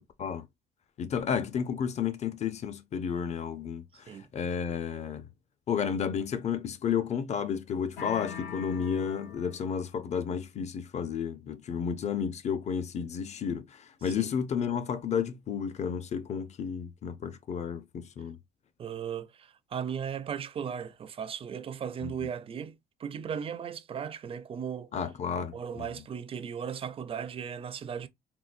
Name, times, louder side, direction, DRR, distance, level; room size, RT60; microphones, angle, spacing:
voice 1, 1.0-5.3 5.7-18.4 22.0-22.1 24.9-25.9, left 7 dB, 40° left, 0.6 m, -32 dB
voice 2, 3.9-4.3 14.1-14.3 18.8-24.9 25.4-28.1, right 7 dB, 35° right, 0.4 m, -37 dB
sound 1, 8.0-9.9, left 7 dB, 80° left, 1.1 m, -42 dB
3.8 x 2.2 x 2.4 m
cardioid pair, 110°, 17 cm